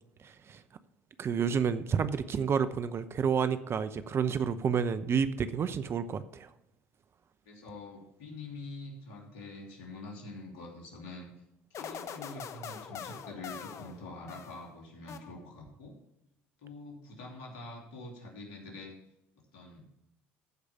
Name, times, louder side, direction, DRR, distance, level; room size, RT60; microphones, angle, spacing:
voice 1, 0.2-0.6 1.2-6.5, right 6 dB, 40° right, 13 dB, 0.8 m, -30 dB
voice 2, 7.4-11.3 11.7-16.0 16.6-19.0 19.5-19.9, left 2 dB, 70° left, 0 dB, 3.0 m, -45 dB
sound 1, 11.7-14.7 15.1-15.7, left 8 dB, 50° left, 0.9 m, -43 dB
15.0 x 5.1 x 5.9 m, 0.86 s
hypercardioid pair, 65°, 6 cm